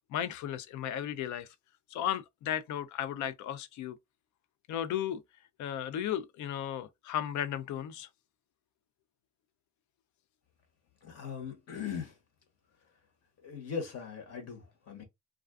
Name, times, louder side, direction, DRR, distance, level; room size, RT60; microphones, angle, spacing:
voice 1, 0.1-1.5 1.9-4.0 4.7-5.2 5.6-8.1, left 10 dB, 75° left, 0.5 m, -35 dB
voice 2, 11.0-12.1 13.4-15.0, left 6 dB, 55° left, 1.1 m, -39 dB
2.4 x 2.3 x 2.3 m
cardioid pair, 90°, 30 cm